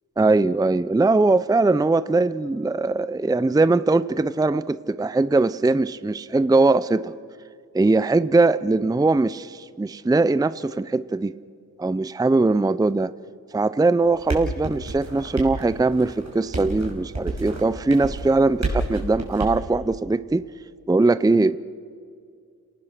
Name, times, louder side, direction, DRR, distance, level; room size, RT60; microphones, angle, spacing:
voice 1, 0.2-7.1 7.7-11.3 11.8-13.1 13.5-20.4 20.9-21.6, right 3 dB, 10° right, 16 dB, 0.5 m, -21 dB
sound 1, 14.0-19.6, right 2 dB, 45° right, 5.5 m, -31 dB
28.5 x 19.0 x 6.7 m, 2.2 s
cardioid pair, 60°, 38 cm